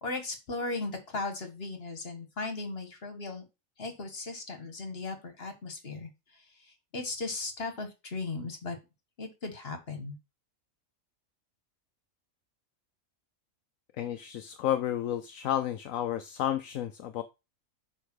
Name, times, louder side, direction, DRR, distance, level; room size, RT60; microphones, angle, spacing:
voice 1, 0.0-3.4 3.8-8.8 9.2-10.2, left 3 dB, 45° left, 2.0 m, -37 dB
voice 2, 14.0-17.2, left 11 dB, 75° left, 1.0 m, -31 dB
8.2 x 3.6 x 6.4 m
omnidirectional pair, 1.5 m